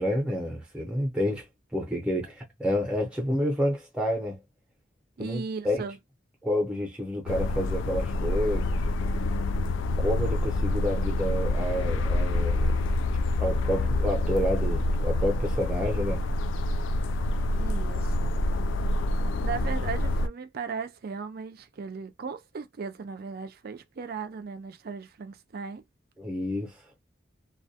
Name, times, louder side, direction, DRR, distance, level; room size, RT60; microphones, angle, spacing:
voice 1, 0.0-1.4 1.7-4.4 5.2-5.9 6.4-8.7 10.0-12.9 13.4-16.2 26.2-26.8, equal, 5° right, 0.7 m, -29 dB
voice 2, 5.2-6.0 17.6-18.3 19.4-25.8, right 5 dB, 50° right, 0.4 m, -37 dB
sound 1, 7.3-20.3, left 1 dB, 75° left, 0.3 m, -27 dB
2.3 x 2.1 x 2.7 m
head